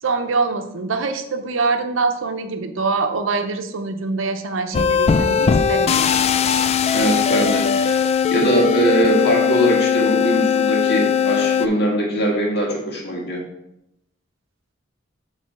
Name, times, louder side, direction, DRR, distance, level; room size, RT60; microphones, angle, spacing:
voice 1, 0.0-6.1, right 4 dB, 75° right, 7 dB, 0.7 m, -24 dB
sound 1, 4.7-11.7, left 7 dB, 30° left, 0.3 m, -19 dB
voice 2, 6.9-8.0 8.3-13.4, right 1 dB, 60° left, -1 dB, 1.9 m, -21 dB
7.4 x 3.4 x 5.8 m, 0.85 s
head